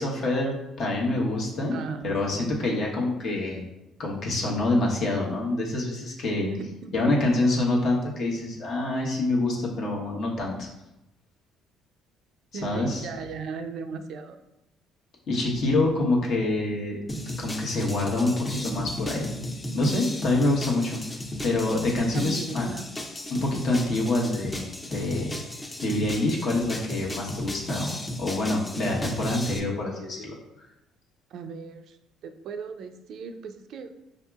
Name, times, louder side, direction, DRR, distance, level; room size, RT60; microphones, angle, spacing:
voice 1, 0.0-1.8 2.0-3.6 4.0-6.5 6.9-10.7 12.6-13.1 15.3-17.0 17.4-19.3 19.7-21.0 21.4-22.7 23.3-25.4 25.8-30.4, left 2 dB, 60° left, -2 dB, 1.0 m, -26 dB
voice 2, 1.7-2.6 6.4-7.2 12.5-14.4 21.9-22.9 31.3-32.0 32.2-33.9, right 4 dB, 65° right, 8 dB, 0.3 m, -37 dB
sound 1, 17.1-29.6, left 1 dB, 20° left, 0.5 m, -35 dB
4.9 x 2.7 x 2.3 m, 0.91 s
supercardioid pair, 80°, 0 cm